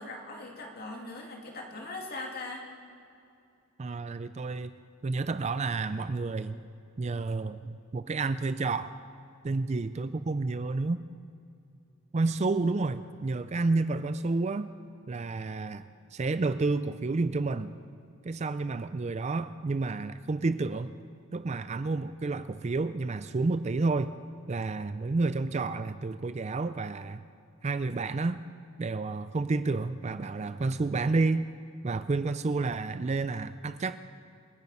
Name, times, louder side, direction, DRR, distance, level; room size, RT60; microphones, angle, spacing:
voice 1, 0.0-2.7, left 2 dB, 45° left, 0 dB, 2.5 m, -40 dB
voice 2, 3.8-4.7 5.0-6.6 7.0-8.9 9.4-11.0 12.1-14.7 15.1-17.8 18.2-20.9 21.3-24.1 24.5-27.2 27.6-28.4 28.8-31.5 31.8-34.0, right 3 dB, 30° right, 12 dB, 0.4 m, -30 dB
27.0 x 9.1 x 5.5 m, 2.6 s
head